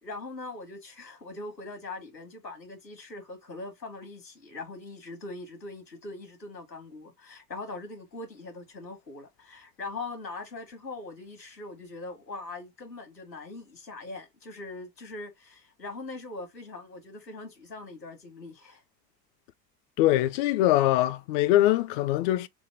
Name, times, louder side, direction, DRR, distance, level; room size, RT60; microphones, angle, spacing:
voice 1, 0.0-18.8, left 3 dB, 85° left, 1.4 m, -41 dB
voice 2, 20.0-22.5, left 14 dB, 35° left, 0.4 m, -23 dB
6.0 x 2.1 x 3.3 m
figure-of-eight pair, 80°, 48 cm